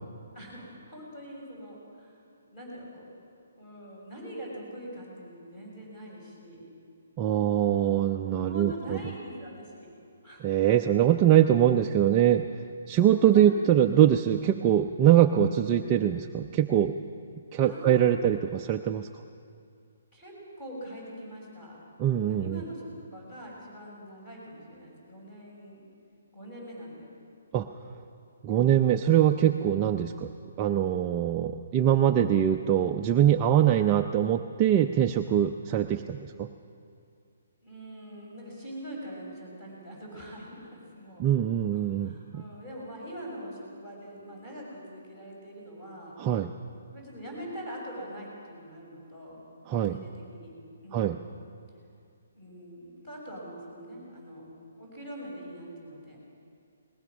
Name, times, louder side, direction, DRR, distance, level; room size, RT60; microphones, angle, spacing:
voice 1, 0.3-2.2 2.5-3.1 3.5-6.7 8.4-9.9 10.2-10.4 13.0-13.4 17.6-18.2 20.1-21.8 22.2-25.8 26.3-27.1 30.1-30.2 37.6-41.3 41.7-46.2 46.9-49.5 49.8-50.5 50.8-51.3 52.3-56.2, equal, 20° left, -3 dB, 6.2 m, -43 dB
voice 2, 7.2-9.0 10.4-12.5 12.9-16.9 17.5-19.1 22.0-22.6 27.5-27.7 28.4-30.3 30.6-36.5 41.2-42.4 46.2-46.5 49.7-50.0 50.9-51.2, right 10 dB, 20° right, 4 dB, 0.4 m, -23 dB
21.5 x 20.0 x 6.2 m, 2.4 s
hypercardioid pair, 170°, 0 cm